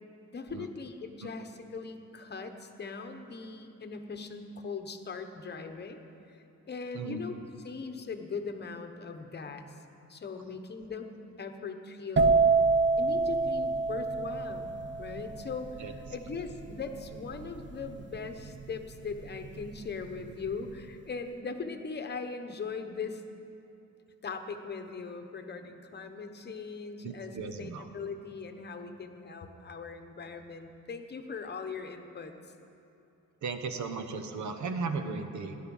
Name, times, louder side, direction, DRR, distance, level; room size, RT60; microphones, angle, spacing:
voice 1, 0.3-7.3 7.6-9.8 10.1-11.1 11.4-12.4 13.0-14.7 15.0-23.2 24.2-32.3, left 4 dB, 35° left, 6 dB, 1.0 m, -40 dB
sound 1, 12.2-19.7 20.0-20.5, right 4 dB, 40° right, 0.6 m, -27 dB
voice 2, 27.0-27.9 33.4-35.5, right 4 dB, 70° right, 7 dB, 1.1 m, -36 dB
17.5 x 10.5 x 5.5 m, 2.7 s
wide cardioid pair, 150°, 30 cm